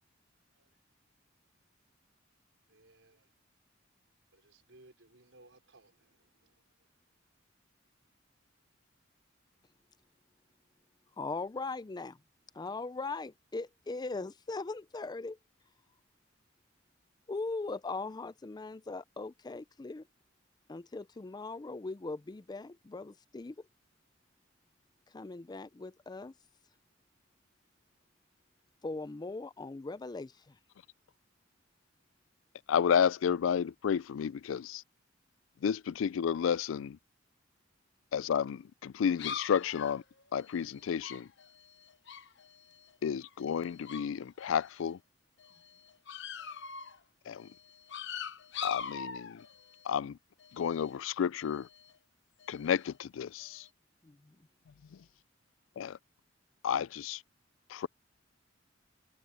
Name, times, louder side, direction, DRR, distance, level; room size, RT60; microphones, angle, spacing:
voice 1, 2.7-3.3 4.3-6.8, right 2 dB, 70° right, 5.0 m, -62 dB
voice 2, 11.2-12.2 12.5-15.4 17.3-20.0 20.7-23.6 25.1-26.3 28.8-30.6 54.0-54.4, left 3 dB, 20° left, 0.4 m, -40 dB
voice 3, 32.7-34.8 35.6-37.0 38.1-40.0 40.3-41.3 43.0-45.0 47.3-47.5 48.6-49.4 49.8-50.2 50.5-51.7 52.5-53.7 55.8-56.0 56.6-57.2 57.7-57.9, left 7 dB, 85° left, 0.4 m, -31 dB
sound 1, 39.1-43.0 43.2-44.1 44.4-44.9 45.4-47.0 47.4-50.0 50.4-51.0 51.4-52.0 52.4-53.0 53.4-53.7, left 7 dB, 65° left, 1.0 m, -44 dB
head